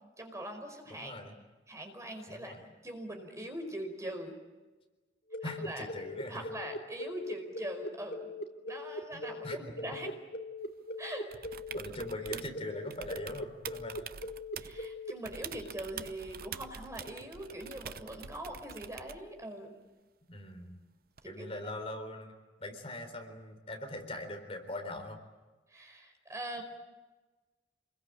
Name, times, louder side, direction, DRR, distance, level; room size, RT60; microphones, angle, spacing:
voice 1, 0.2-1.1 1.7-2.5 2.8-4.4 5.4-5.9 6.3-8.3 8.7-10.1 11.0-11.3 14.6-19.8 21.2-21.5 25.7-26.6, right 1 dB, 15° right, 4 dB, 4.8 m, -42 dB
voice 2, 0.9-1.4 2.3-2.6 5.4-6.5 9.1-9.7 11.7-14.1 20.3-20.8 21.2-22.3 22.6-25.2, left 1 dB, 35° left, 5 dB, 4.0 m, -42 dB
sound 1, 5.3-15.1, left 2 dB, 55° left, 2.8 m, -40 dB
sound 2, 11.3-12.6 12.9-14.9 15.2-19.3 21.2-21.3, right 7 dB, 55° right, 0.8 m, -45 dB
28.5 x 22.0 x 8.9 m, 1.2 s
head